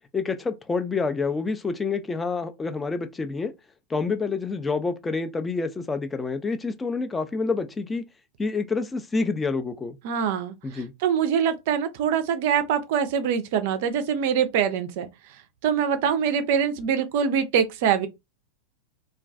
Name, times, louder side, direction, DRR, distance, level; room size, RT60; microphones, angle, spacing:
voice 1, 0.1-3.5 3.9-8.0 8.4-10.0 10.6-10.9, left 4 dB, 15° left, 0.4 m, -28 dB
voice 2, 10.0-10.5 11.0-15.1 15.6-18.1, right 8 dB, 50° right, 0.4 m, -24 dB
2.2 x 2.2 x 2.5 m
figure-of-eight pair, 90°, 0 cm